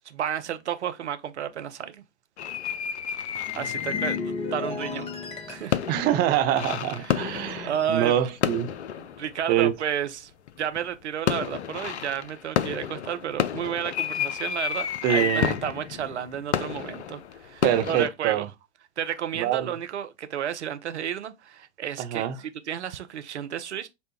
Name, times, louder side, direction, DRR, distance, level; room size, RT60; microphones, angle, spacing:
voice 1, 0.1-2.0 3.6-5.1 5.5-5.8 6.9-8.2 9.0-10.3 10.6-18.5 19.0-23.9, right 9 dB, 80° right, 0.6 m, -32 dB
sound 1, 2.4-4.4 4.9-9.8 10.5-10.9 11.3-18.1, left 9 dB, 75° left, 0.5 m, -30 dB
sound 2, 3.3-8.0 8.2-8.5, left 5 dB, 20° left, 0.6 m, -36 dB
voice 2, 5.9-8.7 9.5-9.7 15.0-15.5 17.6-18.5 19.3-19.7 22.0-22.4, right 11 dB, 30° right, 0.5 m, -25 dB
5.3 x 2.1 x 2.8 m
figure-of-eight pair, 95°, 34 cm